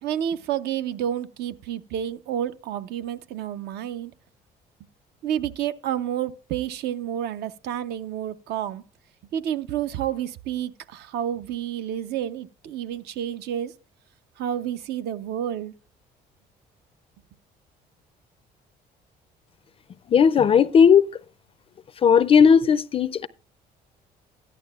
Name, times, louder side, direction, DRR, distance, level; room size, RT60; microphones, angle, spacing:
voice 1, 0.0-4.1 5.2-8.8 9.3-13.7 14.4-15.7, right 10 dB, 75° right, 0.6 m, -30 dB
voice 2, 20.1-21.1 22.0-23.3, left 7 dB, 35° left, 0.4 m, -16 dB
14.0 x 11.0 x 2.3 m
cardioid pair, 110°, 17 cm